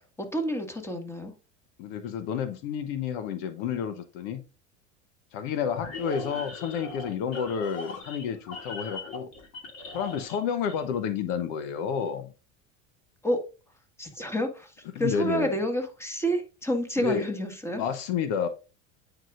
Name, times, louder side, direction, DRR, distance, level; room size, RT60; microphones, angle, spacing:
voice 1, 0.0-1.3 13.2-13.4 14.0-17.8, equal, 5° left, 1.6 m, -29 dB
voice 2, 1.8-4.4 5.3-9.3 9.9-12.3 14.9-15.5 17.0-17.3 17.7-18.5, left 7 dB, 70° left, 1.0 m, -30 dB
sound 1, 5.7-10.4 10.7-11.0, left 3 dB, 45° left, 2.6 m, -39 dB
9.1 x 4.9 x 2.5 m
supercardioid pair, 100°, 37 cm